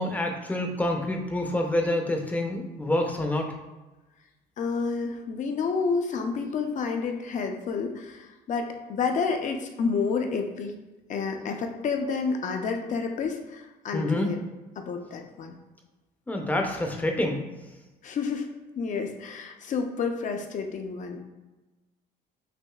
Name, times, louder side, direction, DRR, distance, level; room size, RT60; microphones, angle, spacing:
voice 1, 0.0-3.5 13.9-14.3 16.3-17.5, left 1 dB, 10° left, 2 dB, 0.6 m, -27 dB
voice 2, 4.6-10.7 11.1-14.4 14.8-15.5 18.0-18.5 18.8-21.2, left 5 dB, 50° left, 4 dB, 0.6 m, -29 dB
6.0 x 2.6 x 2.4 m, 1.1 s
cardioid pair, 110°, 17 cm